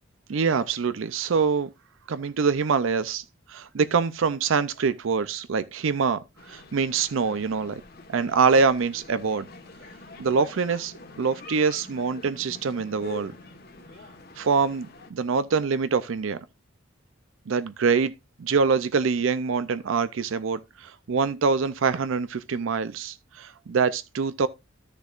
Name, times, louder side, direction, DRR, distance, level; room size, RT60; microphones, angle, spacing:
voice 1, 0.3-1.7 2.1-3.2 3.5-6.2 6.5-7.8 8.1-9.5 10.2-13.3 14.4-16.4 17.5-18.1 18.4-24.5, right 5 dB, 70° right, 0.5 m, -24 dB
sound 1, 6.4-15.1, left 3 dB, 45° left, 1.3 m, -46 dB
13.5 x 6.6 x 2.4 m
head